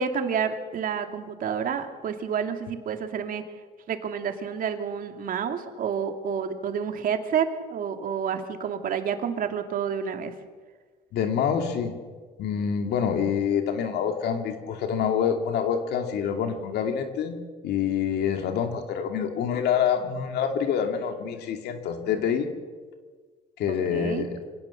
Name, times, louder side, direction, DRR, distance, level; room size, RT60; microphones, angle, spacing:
voice 1, 0.0-3.4 3.9-10.3 23.7-24.3, right 7 dB, 55° right, 6 dB, 2.5 m, -29 dB
voice 2, 11.1-11.9 12.4-17.4 17.6-22.5 23.6-24.4, left 7 dB, 75° left, 5 dB, 2.4 m, -26 dB
25.0 x 17.5 x 7.1 m, 1.5 s
cardioid pair, 110°, 17 cm